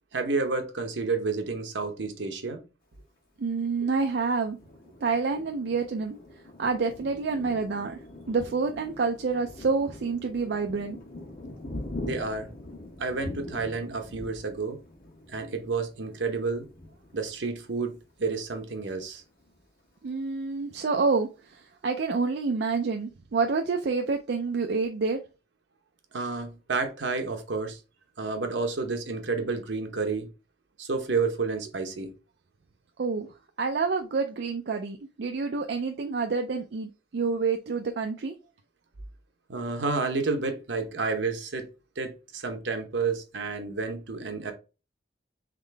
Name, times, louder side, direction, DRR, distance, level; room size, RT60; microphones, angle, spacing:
voice 1, 0.1-2.6 12.0-12.5 13.0-14.8 15.3-16.7 17.1-19.2 26.1-27.8 28.2-30.3 30.8-32.1 39.5-41.7 42.0-44.5, right 4 dB, 75° right, 0.9 m, -30 dB
voice 2, 3.4-4.6 5.0-6.2 6.6-8.0 8.3-11.0 20.0-25.2 33.0-38.4, right 4 dB, 60° right, 0.4 m, -28 dB
Thunder, 3.9-18.3 18.8-18.9 19.2-19.8, left 1 dB, 50° left, 1.3 m, -43 dB
3.7 x 3.6 x 3.3 m
head